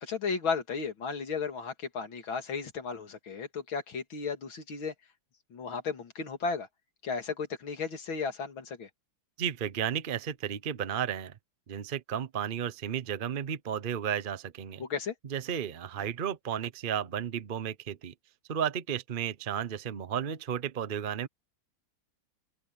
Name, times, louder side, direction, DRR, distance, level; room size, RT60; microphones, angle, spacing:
voice 1, 0.0-4.9 5.5-6.7 7.0-8.9 14.8-15.1, left 5 dB, 85° left, 3.1 m, -34 dB
voice 2, 9.4-11.3 11.7-14.8 15.2-18.1 18.5-21.3, right 8 dB, 50° right, 0.6 m, -33 dB
omnidirectional pair, 2.1 m